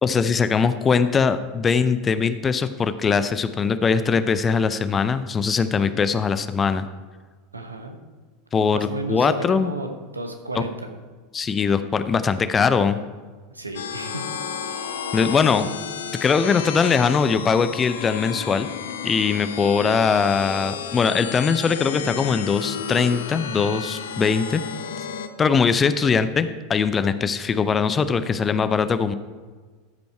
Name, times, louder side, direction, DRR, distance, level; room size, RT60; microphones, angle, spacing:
voice 1, 0.0-6.9 8.5-9.7 10.5-10.6 11.3-13.0 15.1-15.7 16.2-18.7 19.0-24.6 25.4-29.1, left 5 dB, 25° left, 12 dB, 0.5 m, -21 dB
voice 2, 7.5-8.0 8.7-10.9 13.5-14.3 25.8-26.2, right 2 dB, 85° right, 5 dB, 1.0 m, -33 dB
sound 1, 13.7-25.3, left 7 dB, 65° left, 0.6 m, -32 dB
13.5 x 5.3 x 4.5 m, 1.4 s
figure-of-eight pair, 80°, 0 cm